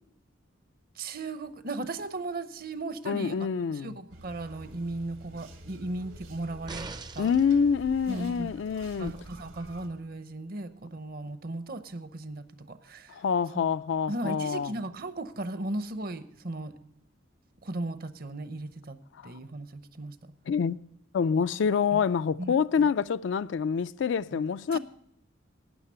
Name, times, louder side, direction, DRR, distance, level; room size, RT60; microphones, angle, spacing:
voice 1, 1.0-3.5 3.7-7.3 8.1-8.5 9.0-13.2 13.5-13.6 14.1-16.7 17.6-19.0 19.2-20.2 21.9-22.0 22.4-22.9 24.3-24.4 24.7-24.8, right 2 dB, 50° right, 0.7 m, -36 dB
voice 2, 3.1-4.0 7.2-9.1 13.2-14.7 20.5-20.8 21.1-24.8, left 6 dB, 65° left, 0.3 m, -26 dB
sound 1, 4.1-9.9, right 1 dB, 85° right, 2.1 m, -48 dB
sound 2, 6.7-7.5 9.1-9.2, right 3 dB, 20° right, 0.4 m, -41 dB
12.5 x 9.3 x 5.6 m
head